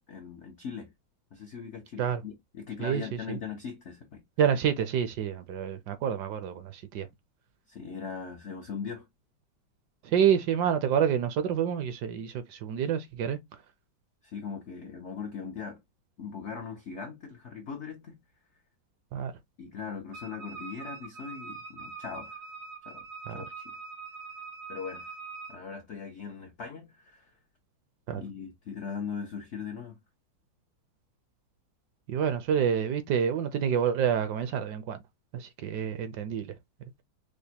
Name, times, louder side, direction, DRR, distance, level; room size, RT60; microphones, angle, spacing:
voice 1, 0.1-0.9 1.3-4.2 7.7-9.1 14.2-15.8 16.2-18.2 19.6-22.4 22.9-23.0 23.3-23.8 24.7-25.1 25.5-27.3 28.1-30.0, left 6 dB, 80° left, 0.6 m, -40 dB
voice 2, 4.4-7.1 10.0-13.4 19.1-19.3 23.3-23.4 28.1-28.2 32.1-35.0 35.3-36.5, right 8 dB, 70° right, 1.0 m, -28 dB
Wind instrument woodwind instrument, 20.1-25.6, right 4 dB, 90° right, 2.9 m, -43 dB
5.1 x 2.1 x 2.7 m
omnidirectional pair, 2.1 m